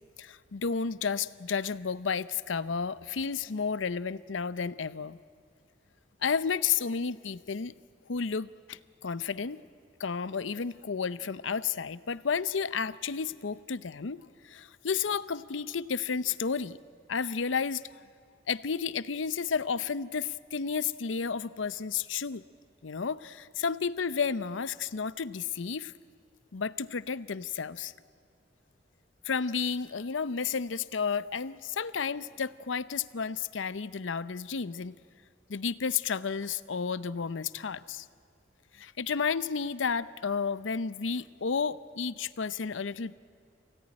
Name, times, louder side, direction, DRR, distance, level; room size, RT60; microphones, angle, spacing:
voice 1, 0.2-5.2 6.2-7.7 8.1-9.6 10.0-16.8 17.1-17.8 18.5-22.4 22.8-25.9 26.5-27.9 29.3-34.9 35.5-38.0 38.8-43.1, left 6 dB, 80° left, 16 dB, 0.7 m, -32 dB
27.0 x 17.5 x 9.8 m, 2.1 s
head